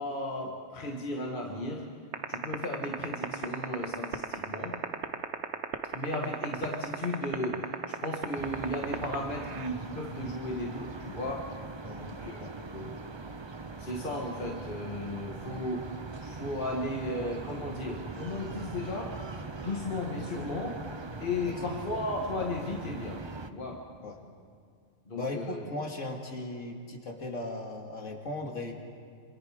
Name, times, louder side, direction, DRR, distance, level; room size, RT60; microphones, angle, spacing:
voice 1, 0.0-2.0 2.3-4.9 5.9-11.6 12.0-12.4 12.7-12.9 13.6-20.9 21.2-23.9 25.1-25.6, left 2 dB, 40° left, 0 dB, 1.9 m, -35 dB
sound 1, 2.1-9.7, right 8 dB, 60° right, 1.2 m, -30 dB
sound 2, 8.3-23.5, right 3 dB, 30° right, 0.6 m, -41 dB
voice 2, 11.8-12.5 21.5-21.7 24.0-24.2 25.1-28.7, left 2 dB, 75° left, 1 dB, 2.7 m, -38 dB
27.0 x 26.5 x 5.1 m, 2.2 s
omnidirectional pair, 1.3 m